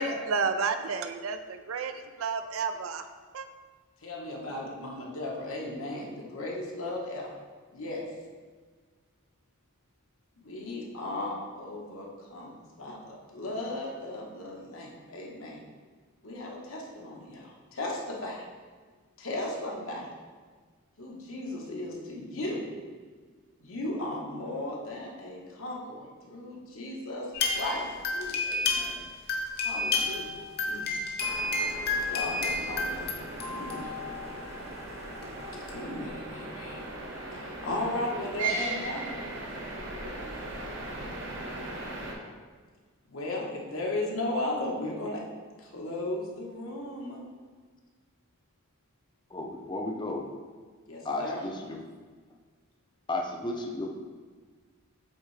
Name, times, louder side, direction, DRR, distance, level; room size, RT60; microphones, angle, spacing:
voice 1, 0.0-1.9 2.2-3.0 3.3-3.5, right 4 dB, 90° right, 9 dB, 0.5 m, -30 dB
voice 2, 4.0-7.3 7.7-8.0 10.4-15.6 16.2-18.5 19.2-20.1 21.0-22.6 23.6-27.3 27.5-27.9 28.1-29.0 29.6-30.9 32.1-33.9 35.7-36.8 37.3-39.2 43.1-45.2 45.6-47.2 50.9-51.4, left 1 dB, 85° left, -2 dB, 1.2 m, -36 dB
sound 1, 27.3-29.0 29.3-34.3 35.2-35.3 35.7-35.8, left 3 dB, 50° left, 0.8 m, -31 dB
sound 2, 31.2-42.1, right 2 dB, 60° right, 0.9 m, -38 dB
voice 3, 49.3-50.3 51.0-51.8 53.1-54.0, left 2 dB, 20° left, 1 dB, 0.5 m, -33 dB
8.2 x 3.6 x 3.3 m, 1.5 s
head